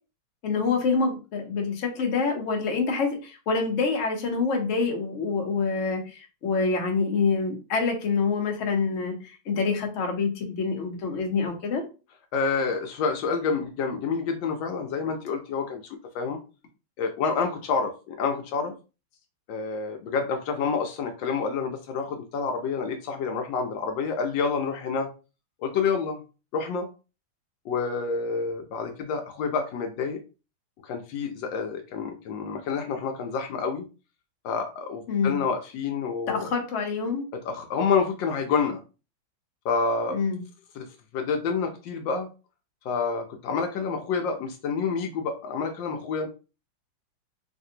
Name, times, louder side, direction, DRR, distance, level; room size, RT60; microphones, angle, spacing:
voice 1, 0.4-11.8 35.1-35.4 36.3-37.2 40.1-40.4, left 4 dB, 60° left, 2 dB, 0.8 m, -26 dB
voice 2, 12.3-15.8 16.1-16.4 17.0-18.7 19.5-25.1 25.6-26.2 26.5-26.9 27.7-30.2 30.8-33.8 34.4-36.5 37.4-38.8 39.6-40.2 40.8-40.9 41.1-42.3 42.8-46.3, left 5 dB, 75° left, 4 dB, 1.2 m, -28 dB
3.3 x 2.6 x 2.7 m, 0.32 s
omnidirectional pair, 2.2 m